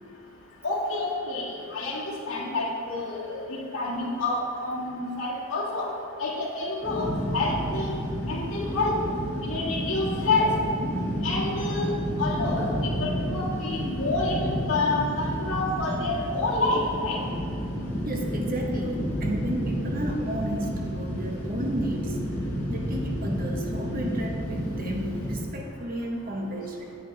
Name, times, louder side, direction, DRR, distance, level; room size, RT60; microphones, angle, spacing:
voice 1, 0.6-5.9 6.2-7.9 8.2-8.9 9.4-10.5 11.2-11.9 12.2-17.2, left 2 dB, 75° left, -5 dB, 1.8 m, -28 dB
sound 1, 6.8-25.3, equal, 10° left, 1.7 m, -31 dB
voice 2, 18.0-22.3 22.7-27.0, right 1 dB, 40° right, 1 dB, 0.9 m, -33 dB
9.4 x 7.4 x 3.3 m, 2.6 s
head